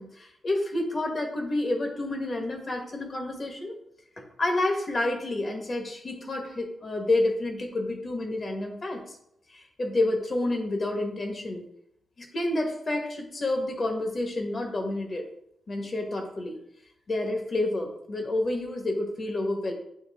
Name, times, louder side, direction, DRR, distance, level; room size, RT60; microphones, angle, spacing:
voice 1, 0.0-3.8 4.2-9.0 9.5-11.6 12.2-15.3 15.7-16.6 17.1-19.7, left 2 dB, 35° left, 2 dB, 1.4 m, -29 dB
9.0 x 3.4 x 3.6 m, 0.75 s
wide cardioid pair, 125°, 0 cm